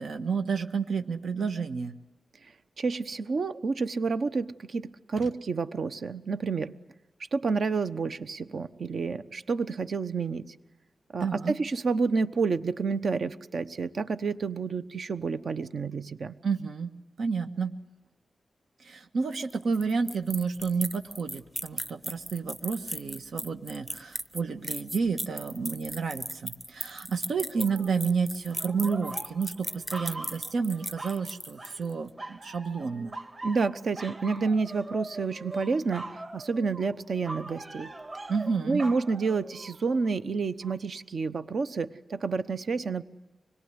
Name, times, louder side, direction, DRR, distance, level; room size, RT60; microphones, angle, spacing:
voice 1, 0.0-2.0 11.2-11.6 16.4-16.9 17.2-17.7 18.8-33.1 38.3-38.8, right 5 dB, 75° right, 6 dB, 1.5 m, -30 dB
voice 2, 2.8-6.7 7.3-10.6 11.1-16.3 33.4-37.9 38.7-43.0, right 4 dB, 55° right, 11 dB, 1.0 m, -29 dB
sound 1, 19.3-31.9, equal, 10° right, 0.8 m, -37 dB
sound 2, 27.4-28.1 28.5-31.3 31.6-31.9 32.2-40.1 40.6-40.7, right 2 dB, 30° right, 2.7 m, -42 dB
25.5 x 21.5 x 9.7 m, 1.1 s
wide cardioid pair, 160°, 0 cm